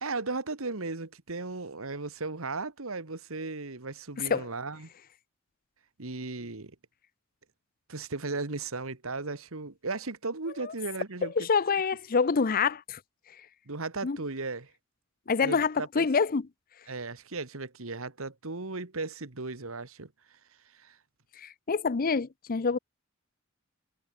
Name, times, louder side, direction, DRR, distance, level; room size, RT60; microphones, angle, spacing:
voice 1, 0.0-4.9 6.0-6.8 7.9-11.5 13.7-14.7 15.4-16.1 16.9-20.1 20.7-21.0, right 3 dB, 75° right, 1.8 m, -36 dB
voice 2, 11.2-13.0 14.0-14.2 15.3-16.5 21.4-22.8, left 5 dB, 45° left, 0.6 m, -26 dB
head